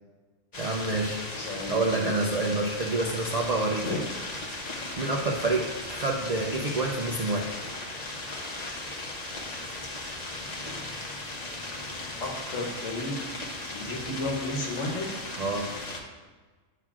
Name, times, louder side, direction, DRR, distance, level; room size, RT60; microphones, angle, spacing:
sound 1, 0.5-16.0, left 2 dB, 40° left, 0.8 m, -37 dB
voice 1, 0.6-1.2 1.7-4.0 5.0-7.5 15.4-15.7, right 2 dB, 50° right, 0 dB, 0.4 m, -28 dB
voice 2, 1.3-2.1 3.8-4.0 12.2-13.2 13.7-15.1, left 2 dB, 80° left, 0 dB, 1.5 m, -33 dB
8.9 x 5.8 x 2.4 m, 1.4 s
omnidirectional pair, 1.3 m